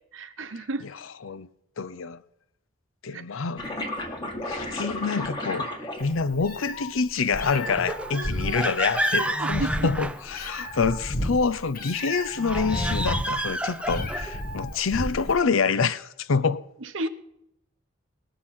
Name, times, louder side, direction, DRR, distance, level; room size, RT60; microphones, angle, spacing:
voice 1, 0.1-0.8 3.1-3.2 8.1-8.6 9.1-9.9 16.8-17.1, right 2 dB, 75° right, 0.9 m, -33 dB
voice 2, 1.8-2.2 3.0-3.9 4.4-16.6, left 5 dB, 85° left, 0.6 m, -27 dB
sound 1, 3.6-6.6 7.4-7.8, left 1 dB, 20° left, 1.7 m, -33 dB
Meow, 6.0-15.4, left 1 dB, 45° left, 1.1 m, -32 dB
sound 2, 7.6-10.8 12.4-14.4, right 1 dB, 5° right, 0.4 m, -30 dB
19.0 x 6.6 x 5.7 m
head